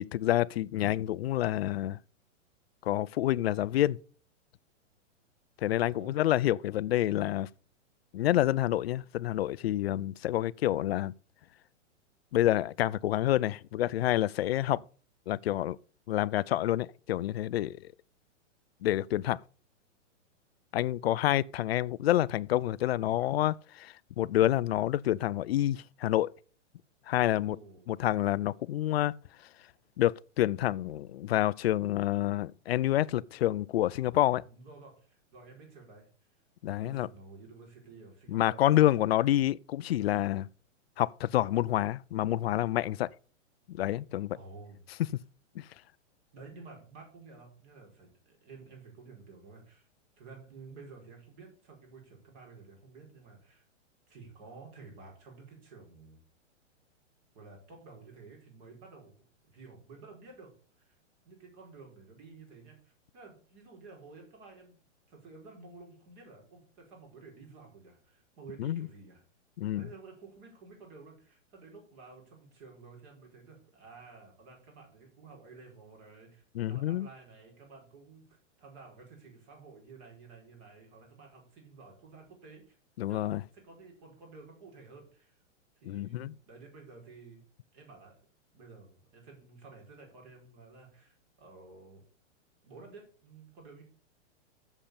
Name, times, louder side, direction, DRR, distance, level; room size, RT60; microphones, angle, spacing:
voice 1, 0.0-2.0 2.8-4.0 5.6-7.5 8.1-11.1 12.3-14.8 15.3-15.8 16.1-17.9 18.8-19.4 20.7-26.3 27.1-27.6 27.9-29.1 30.0-34.4 36.6-37.1 38.3-40.5 41.0-43.2 43.7-44.4 45.6-45.7 68.6-68.9 69.6-69.9 76.5-77.1 83.0-83.4 85.8-86.3, left 13 dB, 55° left, 0.5 m, -28 dB
voice 2, 27.3-27.9 34.4-36.1 36.7-38.7 44.3-44.8 46.3-49.9 50.2-53.6 54.1-56.2 57.3-60.5 60.8-61.0 61.2-64.8 65.1-69.2 69.7-82.8 83.1-85.4 85.8-87.4 87.7-88.2 88.5-92.0 92.6-93.8, right 4 dB, 35° right, 4.8 m, -52 dB
7.7 x 7.3 x 6.7 m
hypercardioid pair, 160°, 37 cm